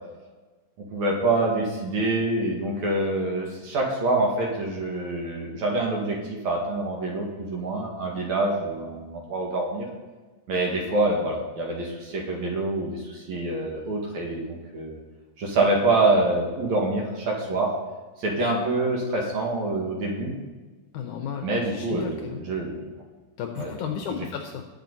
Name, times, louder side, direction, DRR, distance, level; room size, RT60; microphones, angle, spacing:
voice 1, 0.9-9.9 10.5-15.0 15.4-17.7 18.2-20.3 21.4-22.8 23.6-23.7 24.2-24.3, right 2 dB, 55° right, -1 dB, 3.1 m, -26 dB
voice 2, 20.9-22.5 23.4-24.6, left 7 dB, 75° left, 4 dB, 1.9 m, -33 dB
20.0 x 6.9 x 4.1 m, 1.3 s
omnidirectional pair, 4.2 m